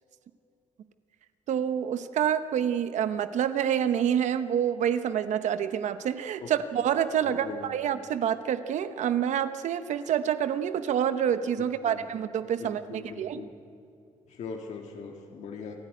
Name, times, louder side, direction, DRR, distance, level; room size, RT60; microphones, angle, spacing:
voice 1, 1.5-13.4, right 9 dB, 70° right, 11 dB, 0.9 m, -27 dB
voice 2, 7.2-7.8 11.6-12.1 12.6-13.5 14.3-15.7, left 5 dB, 65° left, 2 dB, 1.9 m, -41 dB
26.5 x 13.5 x 9.5 m, 2.5 s
wide cardioid pair, 170°, 13 cm